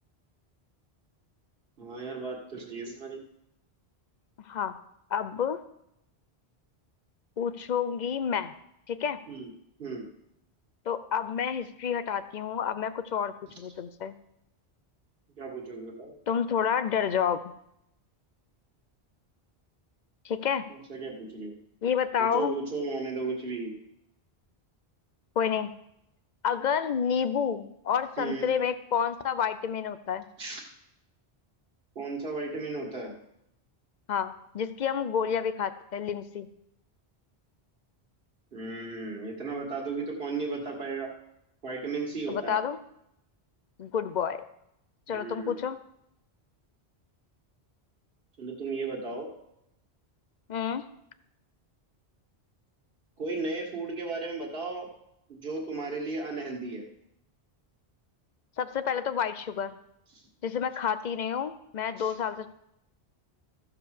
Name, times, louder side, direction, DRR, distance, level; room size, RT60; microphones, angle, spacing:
voice 1, 1.8-3.2 9.3-9.5 9.8-10.0 15.4-16.1 20.7-21.6 22.2-23.7 28.2-28.5 30.4-30.6 32.0-33.1 38.5-41.1 41.6-42.6 45.1-45.5 48.4-49.3 53.2-54.9 55.3-56.9 60.1-60.2 62.0-62.1, right 3 dB, 60° right, -1 dB, 2.1 m, -35 dB
voice 2, 5.1-5.6 7.4-8.5 8.9-9.2 10.9-14.1 16.3-17.4 20.2-20.7 21.8-22.6 25.4-25.7 26.4-30.3 34.1-36.5 42.3-42.8 43.8-44.4 45.1-45.8 50.5-50.8 58.6-59.8 60.4-62.5, left 7 dB, 50° left, 13 dB, 0.7 m, -29 dB
14.5 x 5.0 x 6.5 m, 0.81 s
omnidirectional pair, 1.1 m